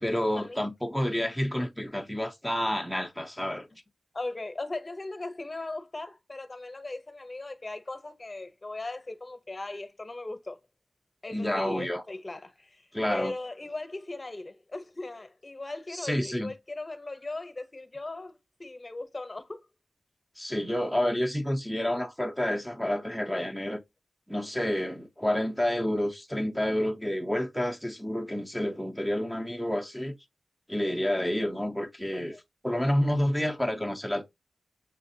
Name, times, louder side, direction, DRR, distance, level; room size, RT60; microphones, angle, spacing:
voice 1, 0.0-3.7 11.3-12.0 12.9-13.3 15.9-16.5 20.4-23.8 24.3-30.2 30.7-32.4 32.6-34.2, left 1 dB, ahead, 0.6 m, -29 dB
voice 2, 4.1-10.6 11.2-19.7 32.3-32.4, left 2 dB, 35° left, 0.8 m, -38 dB
6.4 x 2.4 x 2.7 m
wide cardioid pair, 70°, 0 cm